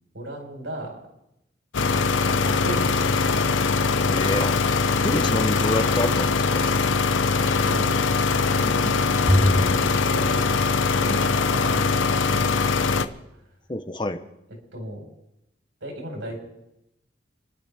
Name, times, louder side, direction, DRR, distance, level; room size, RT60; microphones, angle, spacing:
voice 1, 0.1-1.0 2.3-3.7 7.3-8.0 8.3-10.6 10.9-12.7 13.0-13.2 14.7-15.1 15.8-16.4, equal, 85° right, 0 dB, 4.8 m, -36 dB
sound 1, 1.7-13.1, left 4 dB, 90° left, 0.8 m, -22 dB
voice 2, 4.1-4.6 5.0-6.6 13.7-14.2, left 1 dB, 25° left, 8 dB, 0.9 m, -27 dB
Bowed string instrument, 9.3-11.8, equal, 5° left, 1.2 m, -27 dB
27.5 x 11.5 x 3.6 m, 0.85 s
head